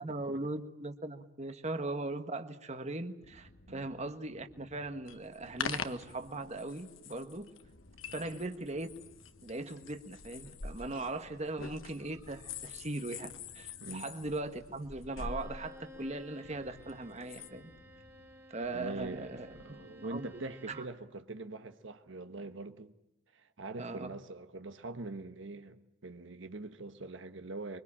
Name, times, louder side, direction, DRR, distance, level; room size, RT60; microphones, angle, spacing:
voice 1, 0.0-7.5 8.1-8.9 9.4-17.7 18.5-19.5 20.0-20.4 20.7-20.8 23.8-24.1, right 2 dB, 35° right, 1.4 m, -39 dB
sound 1, 3.2-20.8, left 1 dB, 60° left, 1.8 m, -61 dB
sound 2, 5.1-17.5, left 5 dB, 80° left, 1.5 m, -45 dB
Bowed string instrument, 15.1-21.0, left 1 dB, 10° right, 2.2 m, -55 dB
voice 2, 18.7-22.9 23.3-27.8, right 2 dB, 65° right, 1.3 m, -43 dB
25.0 x 24.5 x 8.7 m
head